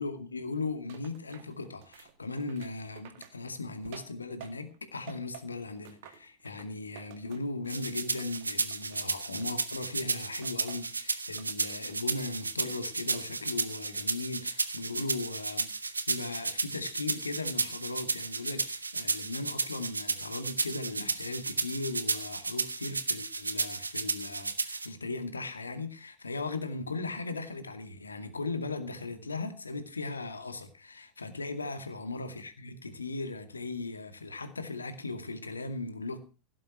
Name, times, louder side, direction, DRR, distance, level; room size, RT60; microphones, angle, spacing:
voice 1, 0.0-36.2, left 3 dB, 75° left, 2.3 m, -38 dB
sound 1, 0.9-4.8 5.1-7.9 8.2-9.8 10.4-11.0 11.4-12.0 12.4-13.3 13.7-14.1, right 10 dB, 50° right, 2.1 m, -52 dB
sound 2, 7.7-24.9, right 4 dB, 80° right, 1.3 m, -33 dB
16.5 x 7.8 x 6.2 m
figure-of-eight pair, 90°, 0 cm